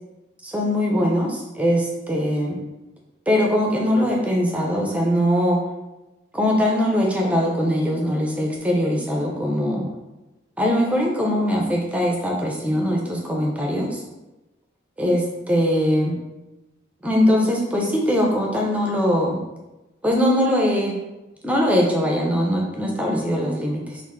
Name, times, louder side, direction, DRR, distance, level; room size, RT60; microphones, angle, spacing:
voice 1, 0.4-2.6 3.3-5.6 6.3-9.9 10.6-14.0 15.0-16.2 17.0-19.4 20.0-20.9 21.4-24.0, equal, 5° right, -1 dB, 0.5 m, -21 dB
3.4 x 2.5 x 3.6 m, 1.0 s
head